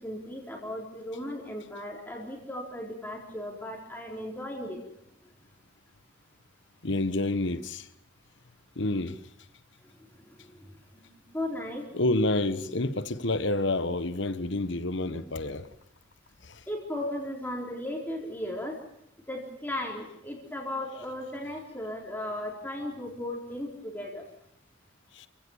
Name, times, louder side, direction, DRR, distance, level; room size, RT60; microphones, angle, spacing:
voice 1, 0.0-4.8 9.8-11.9 16.7-18.8 19.3-24.3, left 1 dB, 10° left, 3.9 m, -36 dB
voice 2, 6.8-7.9 8.8-9.2 11.9-15.7 16.4-16.6 25.1-25.3, left 2 dB, 60° left, 1.2 m, -28 dB
28.0 x 17.0 x 7.1 m
head